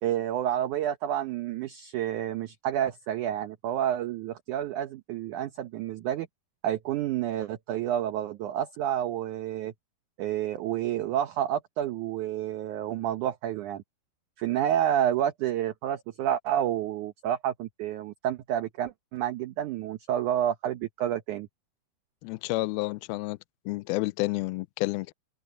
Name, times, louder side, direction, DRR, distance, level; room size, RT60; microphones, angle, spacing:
voice 1, 0.0-6.3 6.6-9.7 10.2-13.8 14.4-21.5, right 11 dB, 75° right, 1.8 m, -29 dB
voice 2, 22.2-23.4 23.7-25.1, left 21 dB, 80° left, 2.2 m, -30 dB
open air
omnidirectional pair, 4.7 m